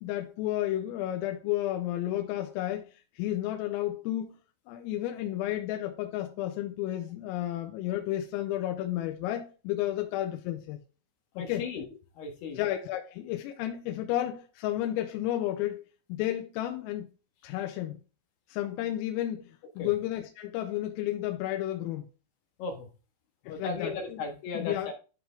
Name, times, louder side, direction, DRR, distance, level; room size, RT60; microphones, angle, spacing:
voice 1, 0.0-4.4 4.7-10.8 11.4-11.7 12.6-17.1 17.4-18.0 18.5-22.1 23.5-24.2 24.6-24.9, left 13 dB, 90° left, 3.5 m, -32 dB
voice 2, 11.4-12.6 19.8-19.9 22.6-22.9 23.4-24.9, left 4 dB, 65° left, 2.9 m, -36 dB
12.5 x 4.4 x 3.4 m
omnidirectional pair, 5.9 m